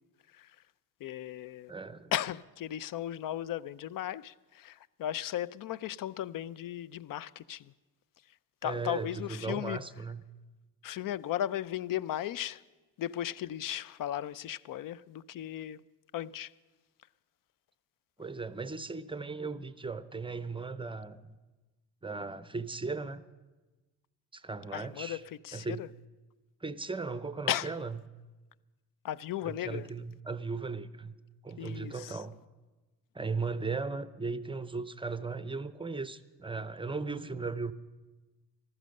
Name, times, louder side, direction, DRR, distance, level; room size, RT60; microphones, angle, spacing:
voice 1, 1.0-1.7 2.1-7.7 8.6-9.8 10.8-12.6 13.0-15.8 16.1-16.5 24.7-25.9 27.5-27.7 29.0-29.9 31.6-32.2, left 12 dB, 55° left, 0.5 m, -36 dB
voice 2, 1.7-2.1 8.6-10.2 18.2-21.4 22.0-23.2 24.3-25.2 25.5-25.9 26.6-28.0 29.4-31.2 31.4-32.4 33.1-37.7, right 4 dB, 15° right, 0.6 m, -37 dB
14.5 x 12.5 x 6.6 m
cardioid pair, 85°, 40 cm